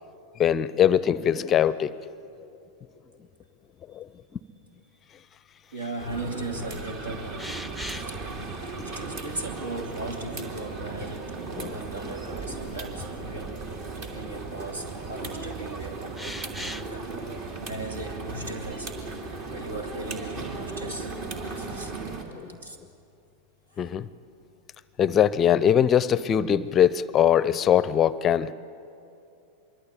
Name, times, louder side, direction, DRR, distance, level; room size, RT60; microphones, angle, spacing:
voice 1, 0.4-1.9 4.0-4.1 11.6-11.7 12.0-12.1 22.3-22.6 23.8-24.1 25.0-28.5, left 9 dB, 25° left, 19 dB, 0.6 m, -22 dB
voice 2, 5.7-7.5 7.9-8.1 8.8-13.6 14.0-17.0 17.7-19.0 19.5-21.1 21.6-21.9 22.6-22.8, right 2 dB, 70° right, 5 dB, 2.6 m, -37 dB
sound 1, 6.0-22.2, right 3 dB, 45° right, 3.0 m, -36 dB
sound 2, 7.4-8.2 9.7-9.8 10.7-11.5 11.9-12.0 14.0-14.1 16.1-16.9, left 1 dB, 5° right, 0.8 m, -38 dB
25.5 x 23.0 x 8.6 m, 2.7 s
figure-of-eight pair, 90°, 0 cm